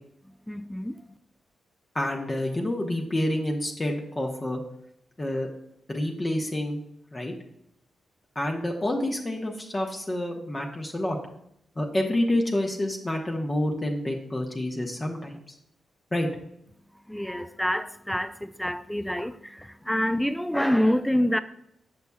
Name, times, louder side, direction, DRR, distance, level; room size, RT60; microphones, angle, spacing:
voice 1, 0.5-1.0 17.1-21.4, equal, 5° left, 0.3 m, -27 dB
voice 2, 1.9-4.6 5.2-5.5 5.9-6.8 7.1-7.3 8.3-11.2 11.8-15.4 16.1-16.3, left 1 dB, 30° left, 1.0 m, -28 dB
6.9 x 5.9 x 2.3 m
supercardioid pair, 55°, 0 cm